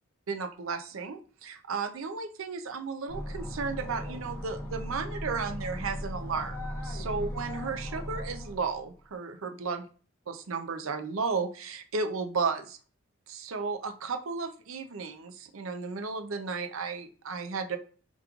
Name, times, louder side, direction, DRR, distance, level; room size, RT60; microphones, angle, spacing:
voice 1, 0.3-6.6 6.8-9.8 10.3-12.8 13.3-17.8, right 4 dB, 75° right, 8 dB, 0.5 m, -34 dB
sound 1, 3.1-8.9, equal, 10° left, 1.0 m, -37 dB
5.1 x 3.1 x 2.4 m, 0.39 s
head